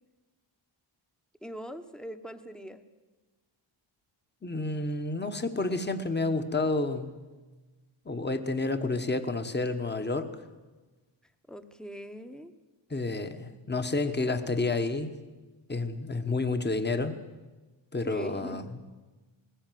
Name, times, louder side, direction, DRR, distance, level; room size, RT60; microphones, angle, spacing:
voice 1, 1.4-2.8 11.5-12.5 18.0-18.6, equal, ahead, 9 dB, 1.1 m, -41 dB
voice 2, 4.4-7.1 8.0-10.3 12.9-15.1 15.7-17.2 17.9-18.6, left 3 dB, 20° left, 8 dB, 1.3 m, -30 dB
19.5 x 16.0 x 9.3 m, 1.3 s
wide cardioid pair, 100°, 49 cm